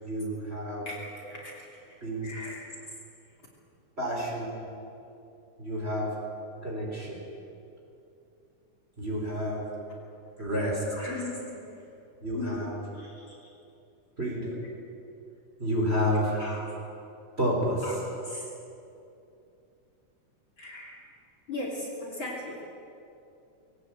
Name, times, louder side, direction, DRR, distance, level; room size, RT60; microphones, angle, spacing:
voice 1, 0.0-0.9 2.0-2.3 4.0-4.6 5.6-6.1 6.6-7.2 9.0-9.7 10.4-10.8 12.2-12.8 14.2-14.6 15.6-16.4 17.4-17.8, equal, 20° right, -3 dB, 4.5 m, -29 dB
voice 2, 0.8-3.0 10.9-11.6 12.3-12.6 12.9-13.5 16.3-16.7 17.8-18.0 18.2-18.5 20.6-21.0 21.5-22.6, left 2 dB, 40° left, -3 dB, 3.5 m, -39 dB
20.0 x 18.0 x 8.9 m, 2.7 s
omnidirectional pair, 3.4 m